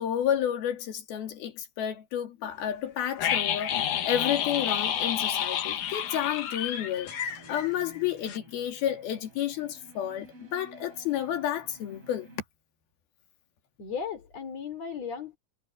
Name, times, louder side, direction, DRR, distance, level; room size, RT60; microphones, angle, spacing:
voice 1, 0.0-3.7 4.1-7.1 7.5-12.3, left 10 dB, 80° left, 4.2 m, -31 dB
sound 1, 3.2-8.0 8.3-8.4, left 9 dB, 60° left, 2.7 m, -30 dB
sound 2, 6.8-12.4, right 1 dB, 35° right, 8.7 m, -53 dB
voice 2, 13.8-15.4, left 6 dB, 45° left, 5.1 m, -36 dB
omnidirectional pair, 4.3 m